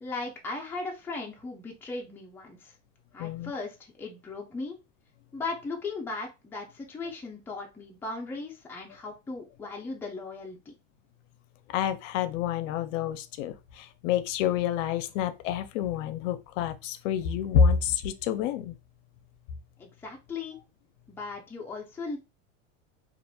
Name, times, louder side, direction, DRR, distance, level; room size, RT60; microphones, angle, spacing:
voice 1, 0.0-2.7 3.1-4.8 5.3-10.7 19.8-20.6 21.1-22.2, left 3 dB, 5° left, 0.4 m, -37 dB
voice 2, 3.2-3.5 11.7-18.7, left 7 dB, 75° left, 0.5 m, -28 dB
2.8 x 2.4 x 2.2 m
supercardioid pair, 125°, 38 cm